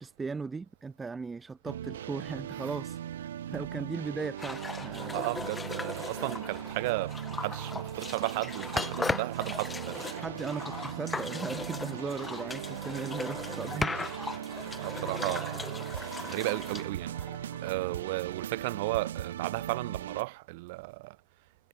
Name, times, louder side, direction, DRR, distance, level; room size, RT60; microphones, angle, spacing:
voice 1, 0.0-3.0 3.5-5.3 10.2-14.1, right 4 dB, 10° right, 0.6 m, -38 dB
sound 1, 1.6-20.2, right 10 dB, 85° right, 4.8 m, -39 dB
sound 2, 4.4-17.9, left 3 dB, 5° left, 1.8 m, -38 dB
voice 2, 5.0-10.3 14.8-15.9 16.2-17.1 17.6-21.2, right 24 dB, 45° right, 2.4 m, -34 dB
supercardioid pair, 165°, 0 cm